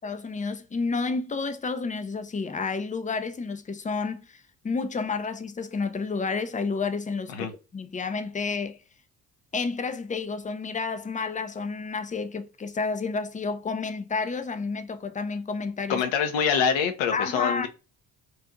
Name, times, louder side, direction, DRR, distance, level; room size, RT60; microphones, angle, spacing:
voice 1, 0.0-8.8 9.5-16.0 17.1-17.7, left 4 dB, 15° left, 0.6 m, -30 dB
voice 2, 15.9-17.7, left 7 dB, 65° left, 0.9 m, -25 dB
4.7 x 2.7 x 2.5 m
hypercardioid pair, 50°, 48 cm